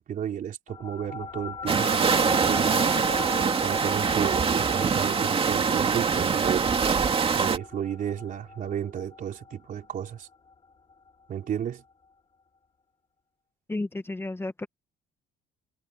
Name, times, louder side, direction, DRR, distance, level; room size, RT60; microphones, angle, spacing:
voice 1, 0.0-2.9 3.6-6.7 7.3-10.3 11.3-11.8, right 9 dB, 50° right, 4.1 m, -33 dB
sound 1, 0.7-11.5, left 4 dB, 30° left, 3.9 m, -40 dB
sound 2, 1.7-7.6, right 6 dB, 35° right, 2.5 m, -24 dB
voice 2, 13.7-14.7, left 2 dB, 15° left, 1.5 m, -32 dB
cardioid pair, 110°, 17 cm